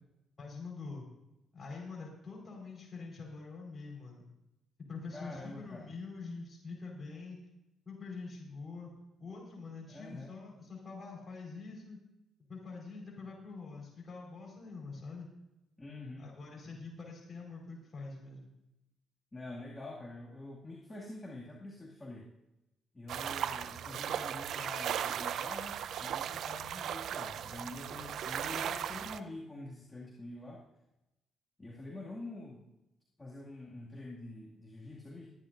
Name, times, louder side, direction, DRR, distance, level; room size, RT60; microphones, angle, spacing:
voice 1, 0.4-1.0 1.5-4.3 4.9-7.4 7.8-8.9 9.2-12.0 12.5-15.3 16.2-18.5, left 4 dB, 35° left, -2 dB, 4.7 m, -45 dB
voice 2, 5.1-5.8 9.9-10.3 15.8-16.3 19.3-22.3 22.9-30.6 31.6-32.7 33.2-35.3, left 2 dB, 20° left, -4 dB, 2.3 m, -46 dB
sound 1, 23.1-29.2, right 9 dB, 70° right, 0.5 m, -37 dB
23.0 x 10.5 x 2.6 m, 0.92 s
cardioid pair, 90°, 0 cm